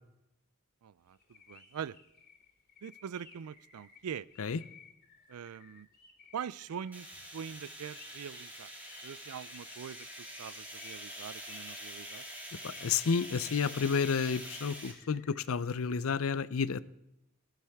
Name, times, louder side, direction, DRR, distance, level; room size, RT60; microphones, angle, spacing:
voice 1, 0.8-1.2 1.5-2.0 2.8-4.3 5.3-5.9 6.3-8.7 9.0-10.1 10.4-12.2, right 8 dB, 90° right, 21 dB, 0.4 m, -43 dB
sound 1, 1.1-15.4, left 5 dB, 45° left, 2.7 m, -58 dB
sound 2, 6.9-14.9, equal, 10° right, 2.6 m, -46 dB
voice 2, 12.6-16.8, left 6 dB, 70° left, 17 dB, 0.5 m, -31 dB
17.5 x 12.0 x 3.5 m, 0.85 s
head